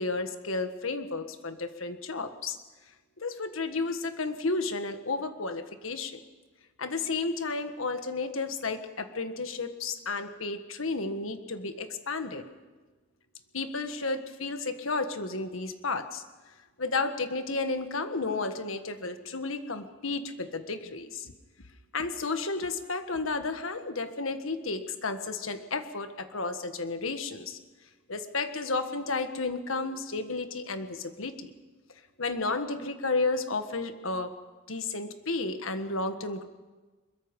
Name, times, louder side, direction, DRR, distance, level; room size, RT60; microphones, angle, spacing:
voice 1, 0.0-2.6 3.2-6.2 6.8-12.4 13.5-16.2 16.8-21.3 21.9-27.6 28.1-31.5 32.2-34.3 34.7-36.4, left 3 dB, 80° left, 8 dB, 1.6 m, -32 dB
23.0 x 22.0 x 5.4 m, 1.3 s
head